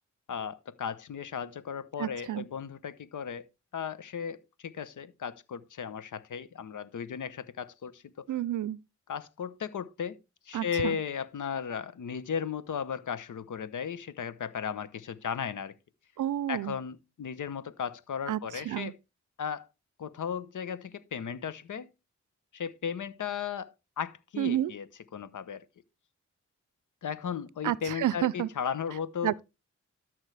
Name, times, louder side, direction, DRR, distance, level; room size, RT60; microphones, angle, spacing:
voice 1, 0.3-3.4 3.7-8.3 9.1-10.2 10.5-15.7 16.5-19.0 19.4-19.7 20.0-21.9 22.5-24.9 25.1-25.6 27.0-29.3, left 7 dB, 80° left, 0.9 m, -36 dB
voice 2, 2.0-2.5 8.3-8.8 10.5-11.0 16.2-16.8 18.3-18.4 18.7-18.9 24.4-24.7 27.6-28.5 29.2-29.4, right 12 dB, 85° right, 0.5 m, -30 dB
13.0 x 6.1 x 3.3 m
cardioid pair, 60°, 30 cm